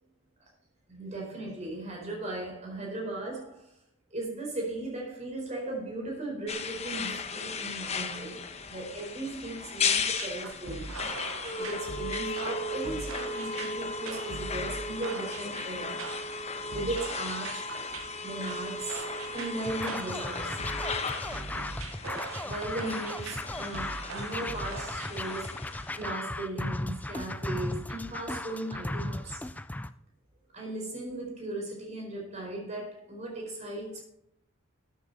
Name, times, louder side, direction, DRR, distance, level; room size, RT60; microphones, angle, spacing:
voice 1, 0.9-3.7 4.1-8.3 8.7-10.9 11.6-16.1 16.7-17.7 18.2-19.0 19.3-20.6 22.4-25.6 25.9-29.4 30.5-34.0, right 2 dB, 30° right, -1 dB, 4.5 m, -37 dB
sound 1, 6.5-26.0, left 4 dB, 30° left, 1.0 m, -36 dB
sound 2, 10.0-25.1, right 3 dB, 80° right, 1.2 m, -42 dB
Scratching (performance technique), 19.6-29.9, left 1 dB, 5° left, 0.3 m, -36 dB
13.5 x 9.2 x 4.1 m, 0.73 s
head